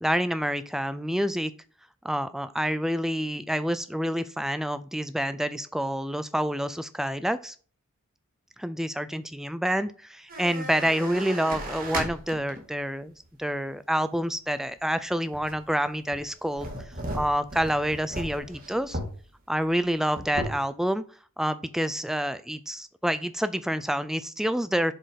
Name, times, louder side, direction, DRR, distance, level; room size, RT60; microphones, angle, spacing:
voice 1, 0.0-1.5 2.0-7.6 8.6-13.1 13.4-16.7 17.1-19.0 19.5-21.0 21.4-24.9, equal, ahead, 12 dB, 0.4 m, -28 dB
sound 1, 10.3-12.7 13.2-13.3 15.3-15.7 16.1-19.2 19.6-19.7 19.9-20.6, right 1 dB, 40° right, 1.8 m, -35 dB
7.4 x 4.4 x 5.2 m, 0.40 s
head